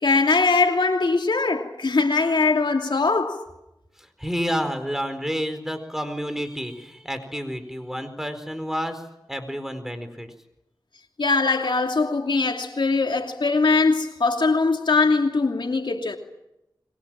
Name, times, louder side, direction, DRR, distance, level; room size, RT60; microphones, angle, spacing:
voice 1, 0.0-3.4 11.2-16.2, left 3 dB, 75° left, 2.8 m, -21 dB
voice 2, 4.0-10.3, equal, 5° right, 4.4 m, -30 dB
29.5 x 23.0 x 7.6 m
wide cardioid pair, 60°, 8 cm